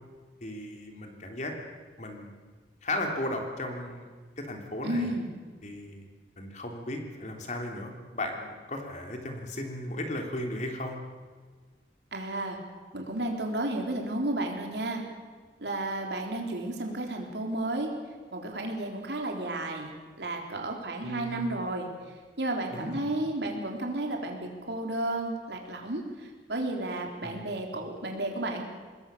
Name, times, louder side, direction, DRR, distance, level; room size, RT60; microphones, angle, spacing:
voice 1, 0.4-1.5 2.0-2.4 2.8-4.1 4.4-5.1 5.6-6.1 6.4-11.0 21.0-21.4 22.7-23.0 27.2-27.6, left 1 dB, 45° left, 3 dB, 3.4 m, -35 dB
voice 2, 4.8-5.3 12.1-12.6 12.9-15.0 15.6-17.9 18.3-19.9 20.2-21.9 22.4-28.6, right 1 dB, 75° right, 2 dB, 4.0 m, -32 dB
25.5 x 20.5 x 7.0 m, 1.5 s
head